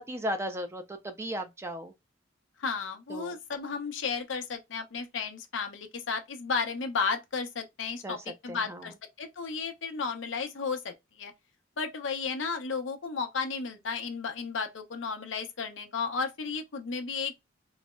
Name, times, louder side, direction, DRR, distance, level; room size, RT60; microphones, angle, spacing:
voice 1, 0.0-1.9 3.1-3.4 8.0-8.2 8.5-8.9, equal, 15° right, 0.4 m, -35 dB
voice 2, 2.6-8.2 8.4-11.3 11.8-17.4, left 5 dB, 80° left, 0.6 m, -33 dB
3.9 x 2.0 x 2.2 m
head